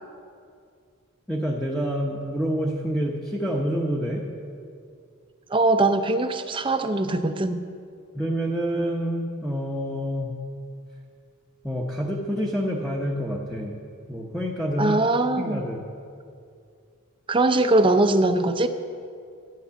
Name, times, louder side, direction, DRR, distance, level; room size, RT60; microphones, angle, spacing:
voice 1, 1.3-4.2 8.1-10.3 11.6-13.7 14.1-15.0 15.4-15.8, equal, ahead, -2 dB, 0.9 m, -27 dB
voice 2, 5.5-7.6 14.8-15.6 17.3-18.7, right 2 dB, 25° right, 8 dB, 0.6 m, -21 dB
12.5 x 9.1 x 7.0 m, 2.3 s
head